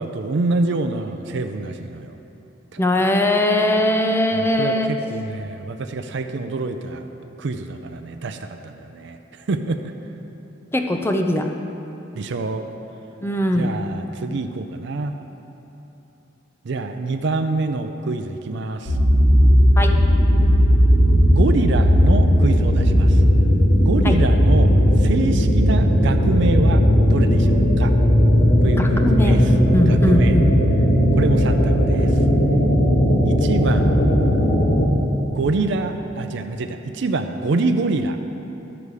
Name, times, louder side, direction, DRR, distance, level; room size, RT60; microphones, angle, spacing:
voice 1, 0.0-2.2 2.7-2.8 4.3-7.1 7.4-9.9 12.1-12.6 13.5-15.2 16.6-19.0 21.3-23.2 23.8-27.9 28.6-29.5 29.9-30.4 31.2-32.2 33.3-33.9 35.2-38.2, right 3 dB, 65° right, 7 dB, 0.5 m, -26 dB
voice 2, 2.8-4.9 10.7-11.5 13.2-13.8 19.8-20.0 24.0-24.2 28.8-29.5 29.7-30.5, left 1 dB, 10° left, 4 dB, 0.5 m, -20 dB
sound 1, 18.9-34.9, equal, 80° left, 1.5 m, -16 dB
12.0 x 6.8 x 4.8 m, 3.0 s
head